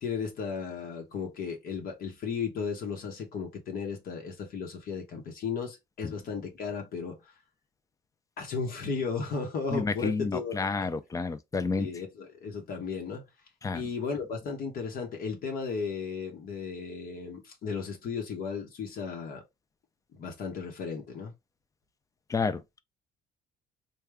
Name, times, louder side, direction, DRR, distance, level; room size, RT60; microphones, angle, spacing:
voice 1, 0.0-7.3 8.4-10.9 11.8-13.2 13.7-19.4 20.1-21.3, left 5 dB, 60° left, 1.0 m, -35 dB
voice 2, 9.7-11.9 13.6-13.8 22.3-22.8, left 4 dB, 20° left, 0.4 m, -30 dB
3.3 x 2.2 x 3.5 m
cardioid pair, 110°, 17 cm